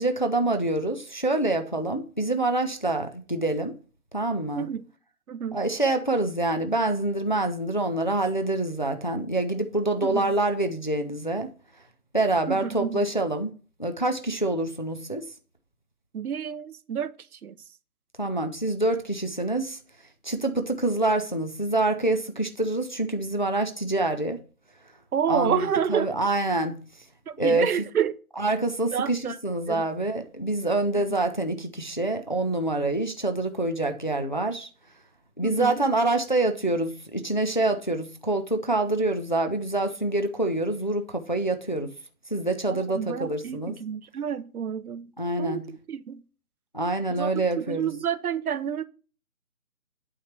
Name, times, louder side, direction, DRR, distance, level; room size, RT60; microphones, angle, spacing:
voice 1, 0.0-3.7 4.1-4.7 5.5-11.5 12.1-13.5 13.8-15.2 18.2-19.8 20.2-24.4 25.3-26.8 27.4-27.7 28.4-34.7 35.4-41.9 42.3-43.8 45.2-45.6 46.7-47.9, right 2 dB, 35° left, 0.4 m, -26 dB
voice 2, 5.3-5.6 10.0-10.3 12.5-13.0 16.1-17.1 17.4-17.6 25.1-26.1 27.3-28.2 28.9-29.4 29.7-29.8 30.9-31.0 35.4-35.8 42.7-45.1 45.4-45.6 45.9-46.2 47.1-47.3 47.6-48.8, right 8 dB, 80° right, 0.7 m, -29 dB
8.7 x 3.3 x 5.6 m
hypercardioid pair, 170°, 44 cm